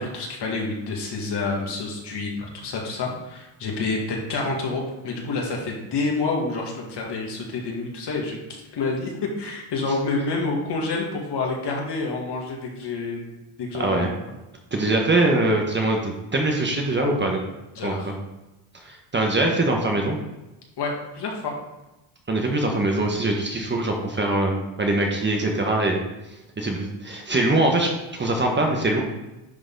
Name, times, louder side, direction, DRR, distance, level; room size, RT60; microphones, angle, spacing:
voice 1, 0.0-8.4 8.7-14.2 17.8-18.1 20.8-21.5, left 3 dB, 50° left, -1 dB, 2.1 m, -28 dB
voice 2, 13.7-14.1 14.7-17.4 17.8-18.1 18.7-20.2 22.3-26.0 26.6-29.0, right 2 dB, 20° right, 1 dB, 1.2 m, -23 dB
10.5 x 3.9 x 3.9 m, 1.0 s
cardioid pair, 95°, 50 cm